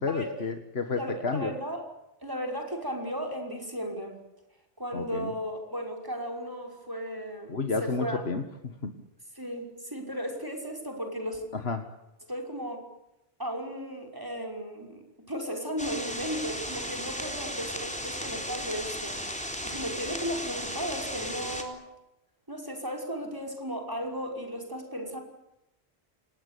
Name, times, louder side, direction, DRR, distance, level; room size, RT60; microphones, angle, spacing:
voice 1, 0.0-1.5 4.9-5.3 7.5-8.4 8.8-8.9 11.5-11.9, left 4 dB, 70° left, 7 dB, 1.9 m, -31 dB
voice 2, 0.9-1.8 2.2-4.2 4.8-8.2 9.3-11.4 12.3-12.8 13.4-19.2 19.6-21.8 22.5-25.2, equal, 20° right, 3 dB, 5.8 m, -35 dB
sound 1, 15.8-21.6, equal, 5° left, 3.7 m, -35 dB
29.0 x 19.5 x 8.4 m, 0.88 s
omnidirectional pair, 1.1 m